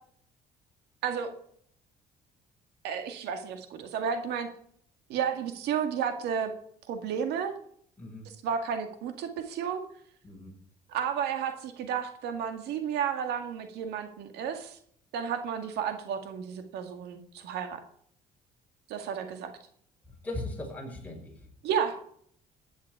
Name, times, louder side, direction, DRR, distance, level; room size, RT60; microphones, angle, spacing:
voice 1, 2.8-4.5 5.1-6.5 6.9-7.6 8.4-9.8 10.9-14.8 15.1-17.8 18.9-19.5 21.6-22.0, right 7 dB, 85° right, 7 dB, 2.0 m, -32 dB
voice 2, 8.0-8.3 10.2-10.6 20.1-21.5, left 1 dB, 10° left, 0 dB, 5.7 m, -39 dB
15.0 x 10.5 x 4.8 m, 0.63 s
cardioid pair, 110°, 17 cm